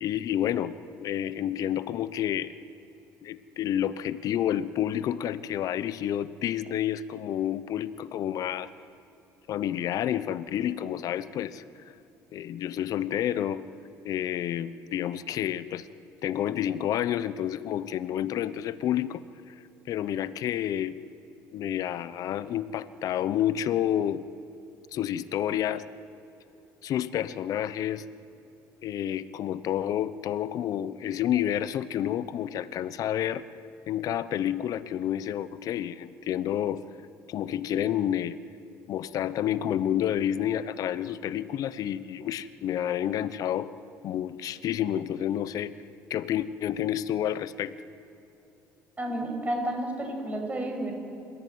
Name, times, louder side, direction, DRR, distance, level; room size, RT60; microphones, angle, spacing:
voice 1, 0.0-2.5 3.2-8.7 9.5-11.6 12.3-13.6 14.0-15.9 16.2-19.5 19.9-21.0 21.5-24.2 24.9-25.8 26.8-28.0 28.8-33.4 33.9-36.8 37.3-38.4 38.9-43.7 44.0-45.7 46.1-47.8, left 11 dB, 60° left, 15 dB, 0.9 m, -29 dB
voice 2, 49.0-50.9, right 1 dB, 20° right, 2 dB, 6.8 m, -31 dB
28.5 x 14.5 x 9.5 m, 3.0 s
supercardioid pair, 95°, 7 cm